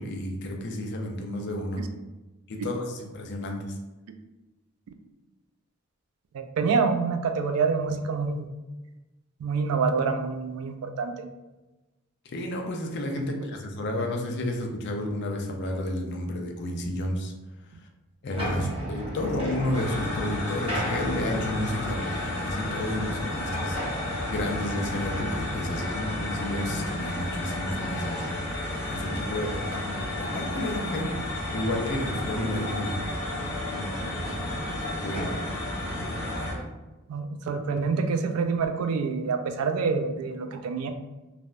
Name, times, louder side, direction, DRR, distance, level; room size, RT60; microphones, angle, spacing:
voice 1, 0.0-1.8 2.5-3.7 12.2-17.3 18.2-23.8 24.3-28.4 28.9-31.2 31.5-33.0 33.7-34.6 35.0-35.3, left 1 dB, 50° left, 2 dB, 0.4 m, -31 dB
voice 2, 6.3-8.5 9.4-11.1 18.6-18.9 37.1-40.9, right 5 dB, 75° right, 7 dB, 0.3 m, -27 dB
sound 1, 18.3-36.6, equal, 25° right, 0.7 m, -35 dB
sound 2, 19.7-36.5, left 2 dB, 15° left, 0.6 m, -34 dB
3.3 x 2.0 x 2.5 m, 1.1 s
head